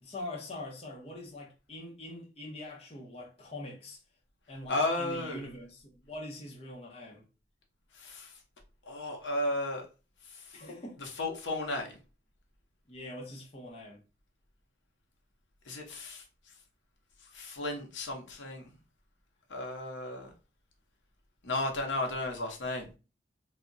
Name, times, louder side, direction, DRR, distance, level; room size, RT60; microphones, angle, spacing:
voice 1, 0.0-4.0 4.5-7.2 10.5-11.0 12.9-14.0, left 1 dB, 35° left, 0.6 m, -43 dB
voice 2, 4.7-5.4 7.9-8.3 8.8-9.9 10.3-10.6 11.0-12.0 15.7-16.2 17.3-18.7 19.5-20.3 21.4-22.9, left 2 dB, 90° left, 0.8 m, -34 dB
2.3 x 2.1 x 3.7 m
head